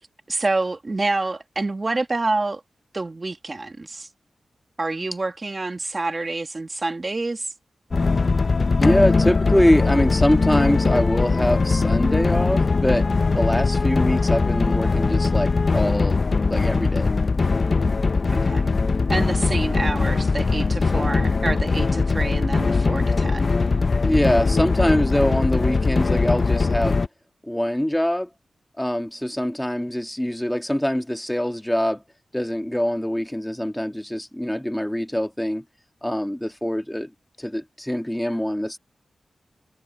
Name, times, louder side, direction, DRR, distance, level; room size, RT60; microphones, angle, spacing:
voice 1, 0.3-2.6 2.9-4.1 4.8-7.5 18.3-18.7 19.1-23.5, right 2 dB, 35° right, 2.1 m, -27 dB
sound 1, 7.9-27.1, left 4 dB, 50° left, 0.8 m, -21 dB
voice 2, 8.8-13.1 13.3-17.1 24.0-27.0 27.4-28.3 28.8-32.0 32.3-35.6 36.0-37.1 37.4-38.8, equal, 5° left, 2.2 m, -23 dB
cardioid pair, 65°, 0 cm